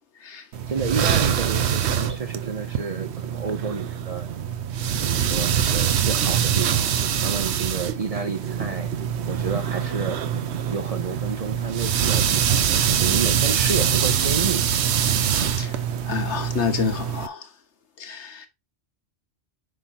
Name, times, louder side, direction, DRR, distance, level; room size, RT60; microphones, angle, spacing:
sound 1, 0.5-17.3, right 8 dB, 75° right, 1.0 m, -24 dB
voice 1, 0.7-4.3 5.0-8.9 9.3-10.2 10.7-14.6, right 5 dB, 45° right, 0.5 m, -30 dB
voice 2, 15.3-15.8 16.1-17.5 18.0-18.5, left 7 dB, 80° left, 1.4 m, -29 dB
8.4 x 5.5 x 2.7 m
omnidirectional pair, 1.2 m